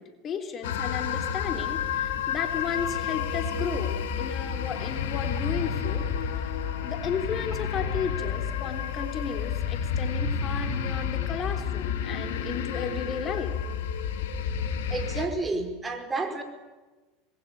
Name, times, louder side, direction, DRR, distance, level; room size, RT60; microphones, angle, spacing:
voice 1, 0.0-6.1 6.8-13.5, left 6 dB, 40° left, 7 dB, 3.4 m, -34 dB
sound 1, 0.6-15.3, left 7 dB, 70° left, 2.9 m, -30 dB
voice 2, 14.9-16.4, right 3 dB, 20° right, 6 dB, 5.2 m, -30 dB
26.0 x 21.0 x 9.3 m, 1.2 s
hypercardioid pair, 90°, 0 cm